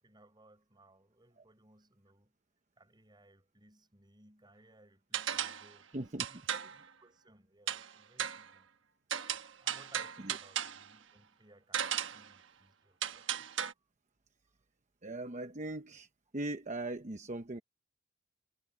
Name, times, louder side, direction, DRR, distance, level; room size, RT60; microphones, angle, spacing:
voice 1, 0.0-2.4 2.8-8.7 9.6-13.5, right 1 dB, 25° right, 7.1 m, -63 dB
sound 1, 5.1-5.7 6.2-6.8 7.7-7.9 8.2-8.5 9.1-10.9 11.7-12.3 13.0-13.7, right 9 dB, 80° right, 1.2 m, -36 dB
voice 2, 5.9-6.3 10.2-10.4 15.0-16.1 16.3-17.6, right 2 dB, 40° right, 0.9 m, -39 dB
head